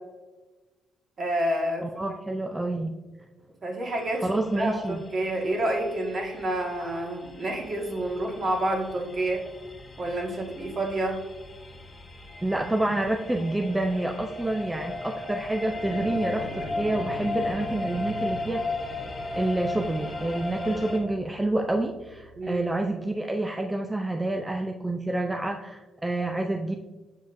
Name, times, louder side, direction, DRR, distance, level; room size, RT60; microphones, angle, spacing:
voice 1, 1.2-1.9 3.6-4.3 4.6-9.4 10.0-11.2 22.4-22.6, right 1 dB, 45° right, 0 dB, 1.6 m, -28 dB
voice 2, 1.8-2.9 4.2-5.0 12.4-18.6 19.3-26.8, right 2 dB, 15° right, 3 dB, 0.4 m, -28 dB
sound 1, 3.9-21.0, left 2 dB, 30° left, 1.8 m, -36 dB
sound 2, 15.5-22.7, equal, 50° left, 0.7 m, -43 dB
7.3 x 5.3 x 2.6 m, 1.2 s
cardioid pair, 90°, 0 cm